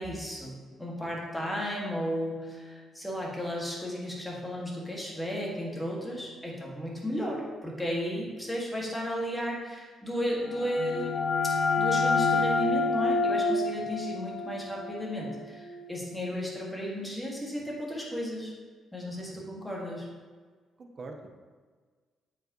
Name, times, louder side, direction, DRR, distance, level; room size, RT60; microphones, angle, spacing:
voice 1, 0.0-11.2 11.4-18.5 18.9-20.1, equal, 5° left, -4 dB, 1.9 m, -34 dB
sound 1, 10.4-16.0, left 3 dB, 45° left, 0.5 m, -28 dB
voice 2, 20.8-21.3, right 3 dB, 45° right, 4 dB, 0.9 m, -45 dB
8.1 x 4.9 x 3.0 m, 1.5 s
cardioid pair, 90°, 0 cm